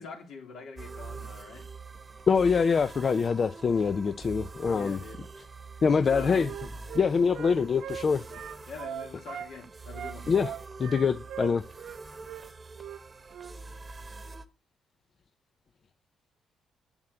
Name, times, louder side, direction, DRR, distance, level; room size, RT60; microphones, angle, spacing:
voice 1, 0.0-1.7 4.7-5.2 6.1-6.5 8.3-8.4 8.7-10.3, left 5 dB, 70° left, 3.3 m, -44 dB
sound 1, 0.8-14.5, right 4 dB, 30° right, 1.1 m, -45 dB
voice 2, 2.3-5.0 5.8-6.5 6.9-8.2 10.3-10.5 10.8-11.6, left 5 dB, 45° left, 0.5 m, -24 dB
Wind instrument woodwind instrument, 6.0-9.5 9.9-12.0 12.2-12.4 12.8-13.0 13.3-13.5, right 10 dB, 75° right, 1.0 m, -40 dB
7.6 x 7.3 x 7.9 m
cardioid pair, 90°, 0 cm